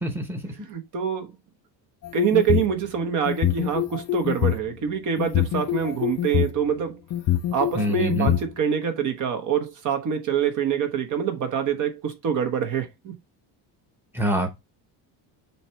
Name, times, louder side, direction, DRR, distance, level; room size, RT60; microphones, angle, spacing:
voice 1, 0.0-0.5 7.7-8.4 14.1-14.5, equal, 5° right, 1.1 m, -25 dB
voice 2, 0.6-1.3 2.1-7.0 7.5-13.1, right 8 dB, 45° right, 1.3 m, -25 dB
sound 1, 2.0-2.7 3.3-4.7 5.2-6.5 7.1-8.4, left 12 dB, 40° left, 0.5 m, -24 dB
6.9 x 3.0 x 4.6 m
cardioid pair, 175°, 44 cm